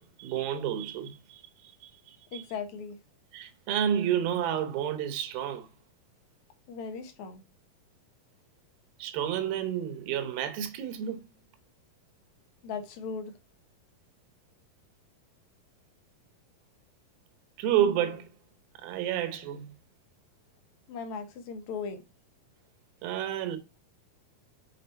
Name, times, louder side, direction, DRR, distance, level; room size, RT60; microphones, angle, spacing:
voice 1, 0.0-2.4 3.3-5.7 9.0-11.2 17.6-18.3 18.7-19.8 23.0-23.6, right 10 dB, 80° right, 2.8 m, -30 dB
voice 2, 2.3-3.0 6.7-7.4 12.6-13.3 20.9-22.0, left 5 dB, 65° left, 2.0 m, -37 dB
6.8 x 4.8 x 4.4 m
omnidirectional pair, 4.2 m